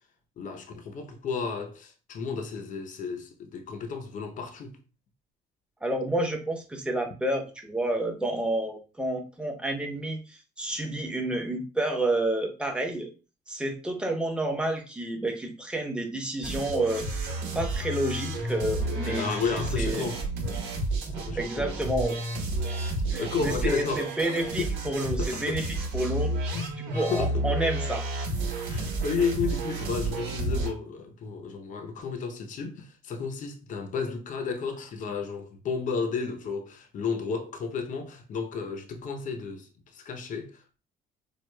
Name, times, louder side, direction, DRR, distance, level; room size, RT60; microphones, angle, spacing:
voice 1, 0.4-4.8 19.0-20.2 21.2-21.8 23.2-24.1 25.2-25.6 26.5-27.4 28.7-40.5, left 5 dB, 50° left, 0.7 m, -32 dB
voice 2, 5.8-13.1 13.5-17.1 17.5-19.2 19.5-20.1 21.4-22.2 23.1-26.3 26.9-28.0, right 1 dB, 5° right, 0.8 m, -29 dB
sound 1, 16.4-30.7, right 2 dB, 80° right, 1.3 m, -31 dB
4.6 x 2.2 x 2.2 m
cardioid pair, 110°, 17 cm